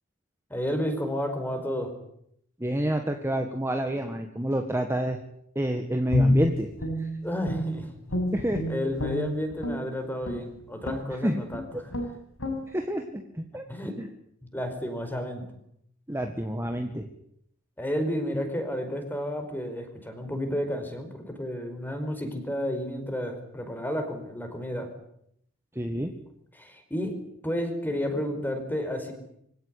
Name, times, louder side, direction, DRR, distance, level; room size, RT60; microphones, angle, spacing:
voice 1, 0.5-1.9 7.2-7.9 8.7-11.9 13.4-14.0 14.4-15.4 17.8-24.9 26.5-27.1 27.4-29.1, equal, 10° left, 6 dB, 5.0 m, -31 dB
voice 2, 2.6-5.2 5.5-6.7 8.3-8.6 11.2-11.4 12.7-13.6 14.0-14.1 16.1-17.1 25.7-26.1, right 1 dB, 10° right, 5 dB, 1.7 m, -28 dB
Guitar, 6.1-7.8 8.1-9.8 10.2-10.5 10.8-11.1 11.5-11.6 11.9-12.1 12.4-12.6, left 1 dB, 90° left, 7.5 m, -27 dB
24.5 x 17.0 x 9.9 m, 0.73 s
head